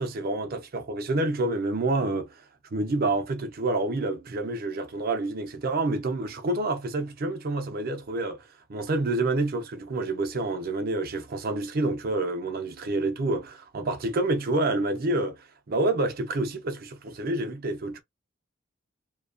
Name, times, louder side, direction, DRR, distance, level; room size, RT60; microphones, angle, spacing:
voice 1, 0.0-2.3 2.7-8.4 8.7-15.4 15.7-18.0, right 2 dB, 45° right, 0.5 m, -28 dB
2.7 x 2.2 x 2.5 m
head